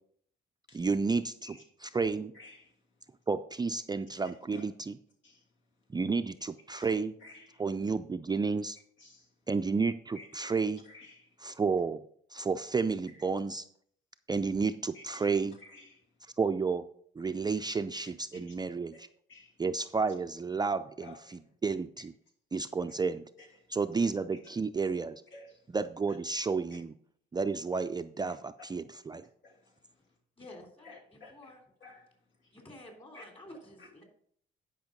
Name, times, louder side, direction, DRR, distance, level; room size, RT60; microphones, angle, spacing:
voice 1, 0.7-1.6 1.8-2.3 3.3-5.0 5.9-7.2 7.6-8.8 9.5-10.8 11.4-12.0 12.3-13.6 14.3-15.6 16.4-16.9 17.2-18.9 19.6-21.1 21.6-22.1 22.5-23.2 23.7-25.2 25.7-26.9 27.3-29.2, right 4 dB, 20° right, 0.4 m, -31 dB
voice 2, 1.4-2.0 2.3-3.1 4.5-4.6 5.2-5.5 6.7-6.9 7.2-7.6 9.0-9.3 10.1-10.5 10.8-11.4 13.1-13.2 14.9-15.3 15.6-16.1 18.3-18.6 18.9-19.0 19.3-19.6 20.0-20.1 21.0-21.5 23.4-23.8 25.3-25.7 26.1-26.2 28.3-28.4 29.4-30.1 30.8-31.5 31.8-32.6 33.1-33.3 33.8-34.0, left 2 dB, 75° left, 2.7 m, -55 dB
voice 3, 30.4-31.6 32.5-34.0, left 1 dB, 25° left, 3.2 m, -51 dB
10.5 x 5.4 x 5.2 m
cardioid pair, 90°, 20 cm